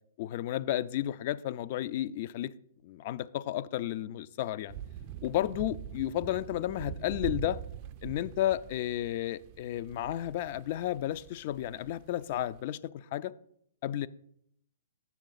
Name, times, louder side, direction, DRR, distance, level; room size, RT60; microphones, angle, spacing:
voice 1, 0.2-2.5 2.8-4.8 5.2-7.6 8.0-13.3 13.8-14.1, left 13 dB, 45° left, 0.3 m, -32 dB
sound 1, 4.7-12.6, right 10 dB, 40° right, 0.3 m, -44 dB
7.2 x 6.6 x 3.9 m
hypercardioid pair, 125°, 0 cm